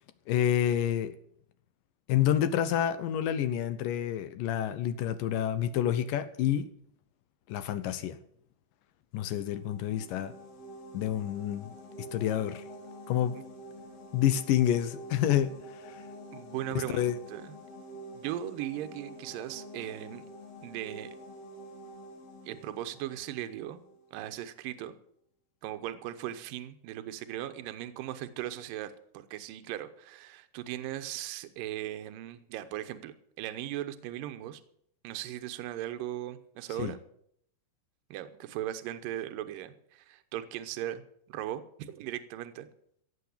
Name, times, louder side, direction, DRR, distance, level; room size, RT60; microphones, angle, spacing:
voice 1, 0.3-1.1 2.1-6.7 7.5-8.2 9.1-10.3 10.9-12.6 13.1-13.4 14.1-16.0 16.8-17.2 36.8-37.0, left 10 dB, 75° left, 13 dB, 2.1 m, -28 dB
sound 1, 9.4-24.1, equal, 50° left, 2.4 m, -48 dB
voice 2, 16.3-17.6 18.1-20.3 20.6-21.2 22.5-23.8 24.1-25.0 25.6-34.6 35.0-37.0 38.1-42.7, right 12 dB, 75° right, 9 dB, 2.5 m, -38 dB
16.5 x 7.6 x 8.4 m, 0.68 s
omnidirectional pair, 4.4 m